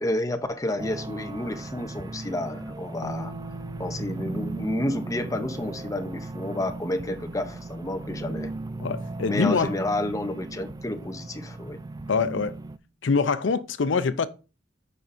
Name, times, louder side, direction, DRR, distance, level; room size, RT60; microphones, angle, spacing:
voice 1, 0.0-3.3 3.8-8.5 9.3-11.8, left 1 dB, 20° left, 0.6 m, -30 dB
sound 1, 0.8-12.8, right 2 dB, 20° right, 0.3 m, -37 dB
sound 2, 3.0-12.8, right 4 dB, 55° right, 1.8 m, -46 dB
voice 2, 8.8-9.7 12.1-12.5 13.0-14.3, left 5 dB, 85° left, 0.5 m, -24 dB
9.1 x 5.5 x 2.6 m
head